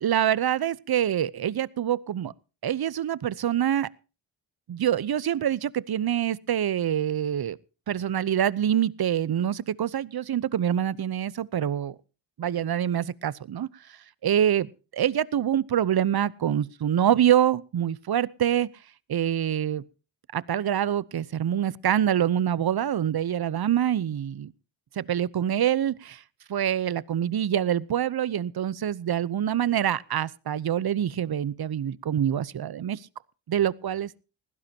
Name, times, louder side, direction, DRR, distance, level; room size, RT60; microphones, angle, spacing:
voice 1, 0.0-2.3 2.6-3.9 4.7-7.6 7.9-11.9 12.4-18.7 19.1-19.8 20.3-24.5 25.0-26.2 26.5-33.1 33.5-34.2, right 10 dB, 50° right, 0.8 m, -25 dB
20.5 x 15.5 x 2.8 m
cardioid pair, 55°, 48 cm